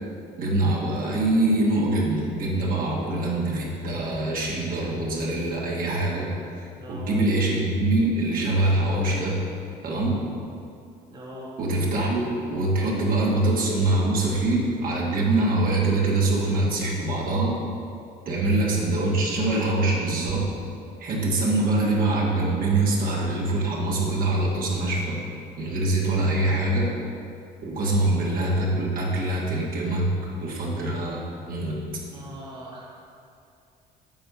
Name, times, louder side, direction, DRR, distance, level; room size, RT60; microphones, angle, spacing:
voice 1, 0.4-6.3 6.6-9.4 9.8-10.2 11.6-17.6 18.2-20.4 21.0-25.2 25.6-26.9 27.6-30.1 30.4-31.2 31.5-31.8, right 2 dB, 55° right, -3 dB, 1.4 m, -24 dB
voice 2, 6.8-7.2 11.1-11.5 27.8-28.0 32.1-33.0, right 1 dB, 25° right, -4 dB, 1.2 m, -41 dB
8.7 x 3.4 x 5.5 m, 2.5 s
cardioid pair, 110°, 17 cm